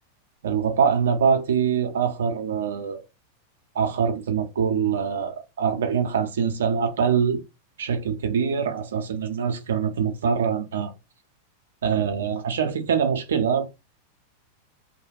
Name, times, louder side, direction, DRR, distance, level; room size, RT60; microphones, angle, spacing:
voice 1, 0.4-3.0 3.7-7.4 7.8-10.9 11.8-13.6, right 7 dB, 65° right, 0.5 m, -24 dB
2.2 x 2.1 x 3.3 m
figure-of-eight pair, 90°, 0 cm